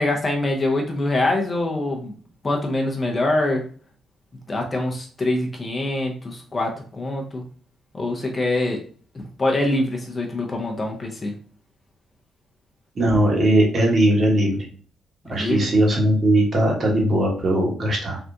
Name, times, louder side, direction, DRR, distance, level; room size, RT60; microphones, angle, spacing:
voice 1, 0.0-2.1 2.4-3.6 4.5-7.4 7.9-8.8 9.4-11.3 15.2-15.7, left 2 dB, 25° left, 1 dB, 0.5 m, -24 dB
voice 2, 12.9-14.6 15.3-18.2, right 1 dB, 40° right, -1 dB, 1.1 m, -19 dB
3.4 x 2.4 x 2.6 m, 0.43 s
cardioid pair, 120°, 0 cm